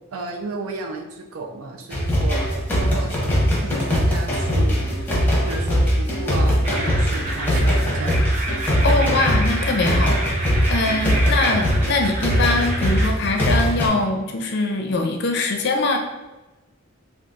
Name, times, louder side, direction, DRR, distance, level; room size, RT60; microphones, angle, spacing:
voice 1, 0.1-5.0 5.5-8.1, right 2 dB, 85° right, 2 dB, 0.5 m, -33 dB
sound 1, 1.9-13.9, equal, 10° left, 0.7 m, -21 dB
sound 2, 6.6-13.1, right 1 dB, 35° right, 0.5 m, -30 dB
voice 2, 8.8-16.0, left 2 dB, 55° left, 3 dB, 0.4 m, -22 dB
3.8 x 2.3 x 2.4 m, 1.1 s
head